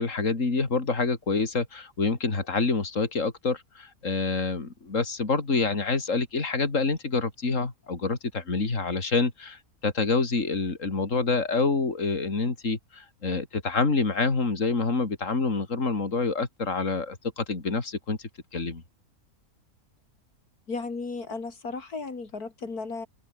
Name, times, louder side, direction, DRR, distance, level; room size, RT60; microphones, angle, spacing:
voice 1, 0.0-18.8, left 4 dB, 55° left, 3.5 m, -27 dB
voice 2, 20.7-23.1, left 4 dB, 90° left, 3.7 m, -35 dB
open air
omnidirectional pair, 1.6 m